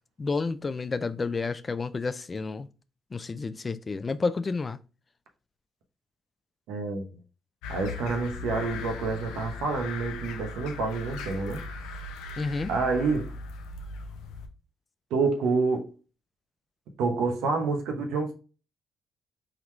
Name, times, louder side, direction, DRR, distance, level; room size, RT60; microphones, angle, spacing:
voice 1, 0.2-2.7 3.1-4.8 12.4-12.7, left 4 dB, 35° left, 0.4 m, -30 dB
voice 2, 6.7-7.2 7.7-11.9 12.7-13.3 15.1-15.9 17.0-18.3, right 4 dB, 85° right, 0.9 m, -28 dB
sound 1, 7.6-14.5, left 3 dB, 90° left, 0.5 m, -38 dB
3.9 x 2.9 x 3.2 m
supercardioid pair, 60°, 0 cm